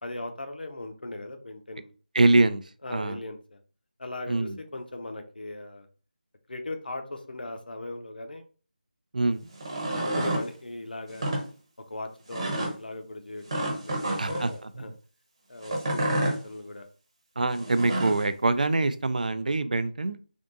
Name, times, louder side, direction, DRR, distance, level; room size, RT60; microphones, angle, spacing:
voice 1, 0.0-1.9 2.8-3.6 4.0-5.9 6.5-8.4 9.9-11.3 11.9-14.9 15.5-16.9, left 2 dB, 70° left, 5 dB, 0.7 m, -38 dB
voice 2, 2.1-2.6 2.9-3.2 4.3-4.6 9.1-9.5 14.2-14.9 17.4-20.2, right 2 dB, 55° right, 12 dB, 0.4 m, -24 dB
sound 1, 9.5-10.4 11.1-11.4 12.3-12.7 13.5-14.4 15.6-16.4 17.6-18.2, right 1 dB, 35° right, 1.1 m, -29 dB
3.5 x 2.5 x 3.8 m, 0.38 s
figure-of-eight pair, 175°, 5 cm